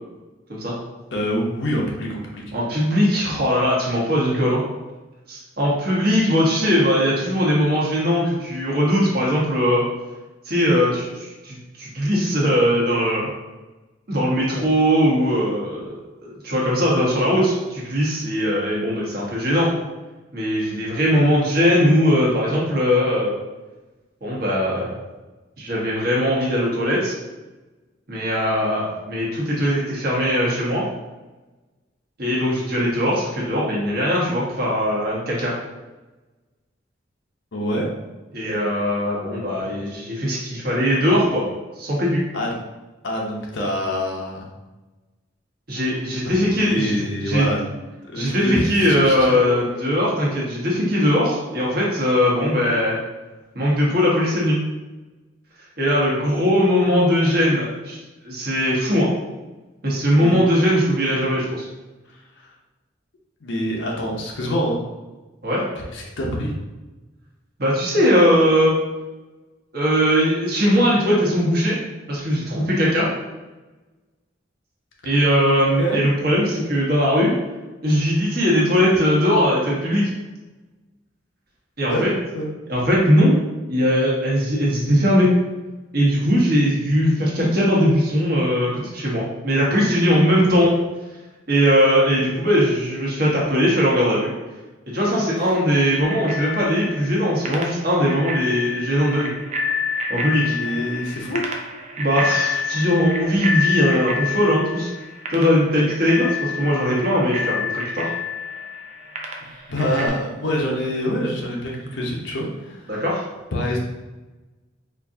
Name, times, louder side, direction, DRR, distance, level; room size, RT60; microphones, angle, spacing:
voice 1, 1.1-2.4 37.5-37.9 39.6-39.7 42.3-42.5 43.0-44.5 46.7-47.6 48.1-49.6 60.1-60.4 62.4-62.5 63.4-64.8 65.9-66.5 75.8-76.0 81.9-82.0 82.3-82.5 100.4-101.4 109.4-113.0 113.5-113.8, equal, 75° left, -1 dB, 0.7 m, -25 dB
voice 2, 2.5-4.6 5.3-9.9 10.4-13.3 14.1-15.9 16.2-19.7 20.3-23.3 24.2-24.9 25.6-27.1 28.1-30.8 32.2-35.5 38.3-41.4 41.8-42.2 45.7-46.9 47.2-47.5 48.1-53.0 53.5-54.6 55.8-58.0 58.2-59.1 59.8-61.7 65.4-65.6 67.6-68.7 69.7-71.8 72.1-73.1 75.0-77.3 77.8-80.1 81.8-82.1 82.7-83.3 83.7-85.3 85.9-90.7 91.5-94.3 94.9-99.3 100.1-100.5 102.0-104.9 105.3-108.1 112.9-113.2, equal, 50° right, -5 dB, 1.1 m, -20 dB
Bicycle bell, 96.0-110.1, left 4 dB, 35° right, 0.4 m, -28 dB
4.3 x 2.5 x 2.6 m, 1.1 s
head